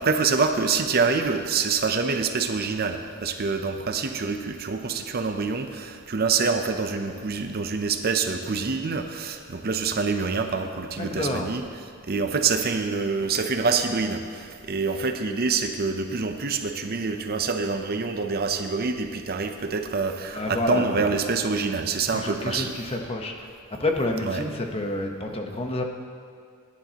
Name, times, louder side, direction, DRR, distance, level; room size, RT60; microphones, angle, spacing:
voice 1, 0.0-11.6 12.1-22.7 24.2-24.4, right 4 dB, 45° right, 6 dB, 0.6 m, -26 dB
voice 2, 11.0-11.5 20.3-21.1 22.1-23.5 23.8-25.8, left 2 dB, 25° left, 3 dB, 0.9 m, -28 dB
17.0 x 10.5 x 2.9 m, 2.1 s
head